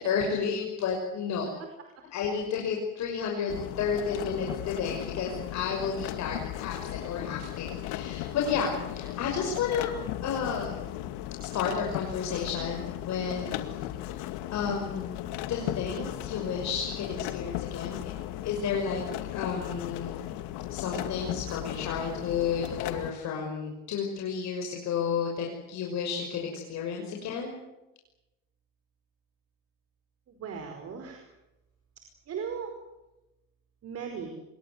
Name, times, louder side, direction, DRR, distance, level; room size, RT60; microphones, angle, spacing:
voice 1, 0.0-1.5 2.1-9.9 10.2-10.8 11.4-13.6 14.0-14.2 14.5-15.1 15.5-18.1 18.4-19.0 19.3-20.2 20.7-27.5, left 6 dB, 50° left, 0 dB, 6.0 m, -32 dB
sound 1, 3.5-23.1, left 13 dB, 70° left, 2.3 m, -36 dB
voice 2, 30.3-31.2 32.3-32.7 33.8-34.3, right 6 dB, 40° right, 4 dB, 5.1 m, -37 dB
27.5 x 22.5 x 8.1 m, 0.97 s
supercardioid pair, 120°, 36 cm